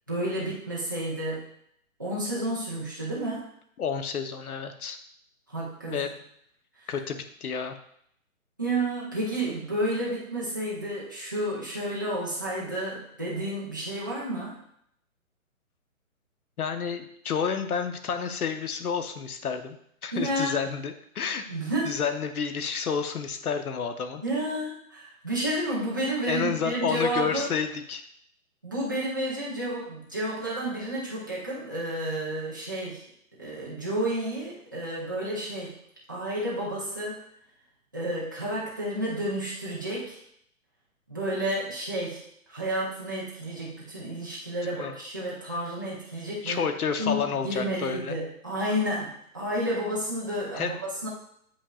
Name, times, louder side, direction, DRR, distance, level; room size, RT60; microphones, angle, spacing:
voice 1, 0.1-1.5 2.0-3.4 5.5-6.0 8.6-14.5 20.1-20.6 21.5-22.0 24.2-27.5 28.6-33.0 33.4-35.7 36.1-37.2 37.9-40.2 41.1-42.2 42.5-46.7 47.0-51.1, right 1 dB, 15° right, -8 dB, 0.6 m, -31 dB
voice 2, 3.8-5.0 5.9-6.1 6.9-7.8 16.6-19.8 20.0-21.4 21.8-24.2 26.3-28.0 44.8-44.9 46.4-48.2 50.5-50.7, left 6 dB, 90° left, 8 dB, 1.0 m, -30 dB
8.7 x 5.3 x 2.4 m, 0.71 s
hypercardioid pair, 175°, 43 cm